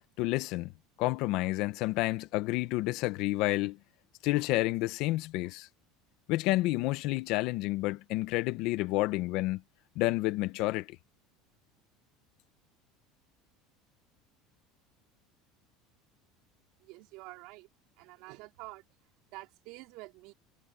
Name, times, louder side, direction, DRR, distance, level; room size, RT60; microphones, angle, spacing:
voice 1, 0.2-0.7 1.0-3.8 4.2-5.7 6.3-9.6 9.9-10.9, left 19 dB, 65° left, 1.4 m, -29 dB
voice 2, 16.8-17.7 18.0-18.8 19.3-20.3, right 23 dB, 65° right, 4.4 m, -48 dB
supercardioid pair, 120°, 0 cm